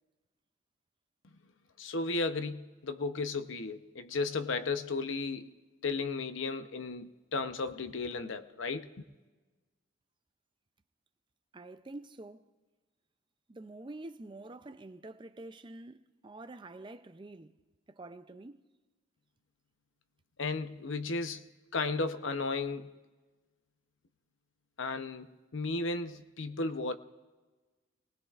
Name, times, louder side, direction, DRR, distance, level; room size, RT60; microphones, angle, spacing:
voice 1, 1.8-5.5 5.8-8.9 20.4-21.5 21.7-22.9 24.8-27.0, left 3 dB, 70° left, 0.8 m, -34 dB
voice 2, 11.5-12.5 13.5-17.6 17.9-18.6, right 2 dB, 25° right, 0.4 m, -47 dB
30.0 x 19.5 x 2.5 m
head